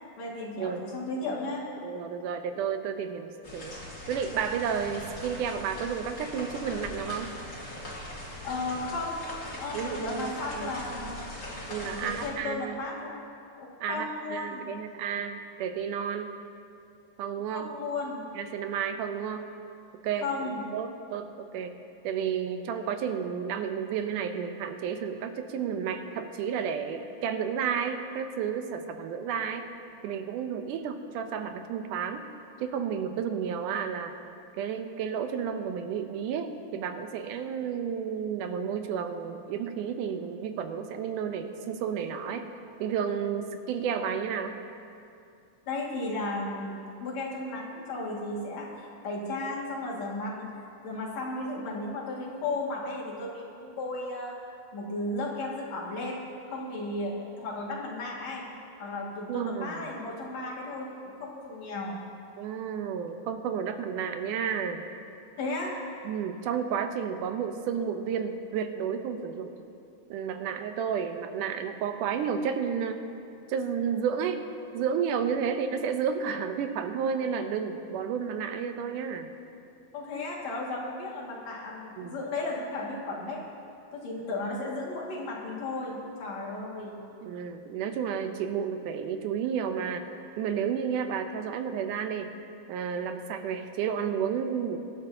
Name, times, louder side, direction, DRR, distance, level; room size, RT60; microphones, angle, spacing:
voice 1, 0.1-1.6 8.4-9.2 9.6-11.3 11.8-13.2 13.6-14.7 17.5-18.3 20.2-20.6 45.7-50.5 50.8-54.4 54.7-58.4 58.8-62.0 65.4-65.7 79.9-83.4 83.9-86.9, left 2 dB, 60° left, -4 dB, 3.2 m, -34 dB
voice 2, 1.8-3.8 4.1-7.3 9.7-10.3 10.6-11.1 11.7-12.8 13.8-16.4 17.2-17.7 18.4-19.5 20.0-20.3 20.7-21.8 22.0-29.6 30.0-32.2 32.6-34.2 34.5-42.5 42.8-44.6 59.3-59.9 62.4-64.8 66.1-69.5 70.1-73.0 73.5-74.4 74.7-79.3 82.0-82.1 87.2-90.1 90.4-92.3 92.7-94.8, right 7 dB, 85° right, 7 dB, 2.3 m, -31 dB
sound 1, 3.4-12.3, left 1 dB, 30° left, 2.8 m, -41 dB
23.5 x 12.0 x 2.8 m, 2.6 s
omnidirectional pair, 3.6 m